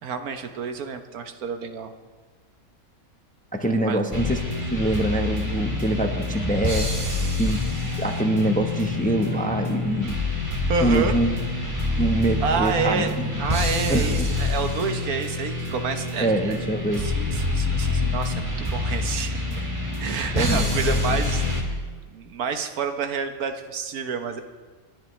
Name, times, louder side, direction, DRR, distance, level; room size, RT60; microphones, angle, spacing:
voice 1, 0.0-1.9 3.9-4.0 10.7-11.1 12.4-16.6 17.0-19.6 20.0-21.8 22.1-24.4, right 5 dB, 80° right, 7 dB, 1.5 m, -29 dB
voice 2, 3.5-4.4 4.7-6.9 7.4-10.2 10.8-11.3 12.0-13.3 13.9-14.3 16.2-17.0 20.3-21.1, right 1 dB, 5° left, 4 dB, 0.8 m, -25 dB
sound 1, 4.1-21.6, left 2 dB, 20° right, 1.7 m, -26 dB
28.5 x 10.5 x 3.2 m, 1.4 s
omnidirectional pair, 1.5 m